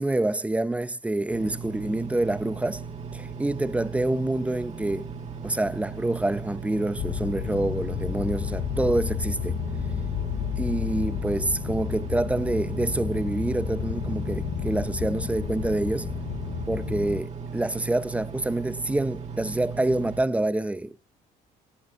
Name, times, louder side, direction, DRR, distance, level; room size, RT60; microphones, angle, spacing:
voice 1, 0.0-2.8 3.1-5.1 5.4-9.6 10.6-16.1 16.7-21.0, right 2 dB, 10° right, 0.7 m, -27 dB
Engine, 1.3-20.2, right 5 dB, 40° right, 2.4 m, -37 dB
sound 1, 7.0-17.2, left 9 dB, 50° left, 0.8 m, -31 dB
12.0 x 10.0 x 3.7 m
cardioid pair, 110°, 17 cm